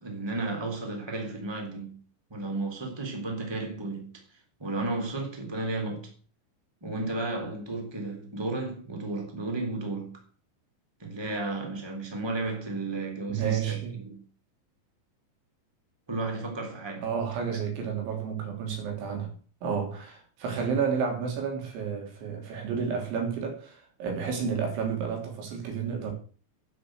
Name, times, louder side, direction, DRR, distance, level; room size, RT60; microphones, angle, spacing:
voice 1, 0.0-2.0 2.3-4.1 4.6-6.1 6.8-10.2 11.0-14.2 16.1-17.1 17.4-17.7, right 2 dB, 5° right, 2.5 m, -33 dB
voice 2, 13.3-14.0 17.0-19.3 19.6-26.1, right 6 dB, 85° right, 5.6 m, -31 dB
9.4 x 8.5 x 7.9 m
omnidirectional pair, 5.2 m